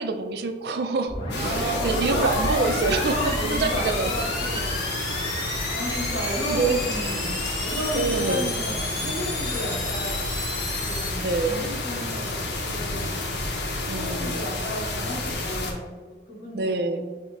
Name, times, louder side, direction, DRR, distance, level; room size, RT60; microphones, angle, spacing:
voice 1, 0.0-4.1 6.2-6.8 7.9-8.5 11.2-11.6 13.9-14.4 16.5-17.1, right 4 dB, 65° right, 7 dB, 0.4 m, -26 dB
sound 1, 1.1-11.1, left 1 dB, 25° left, 1.1 m, -32 dB
sound 2, 1.3-15.7, left 2 dB, 80° left, 0.8 m, -30 dB
voice 2, 1.3-4.9 5.7-10.3 10.7-13.1 13.9-17.2, equal, 45° left, -8 dB, 1.4 m, -33 dB
6.1 x 2.1 x 3.8 m, 1.3 s
head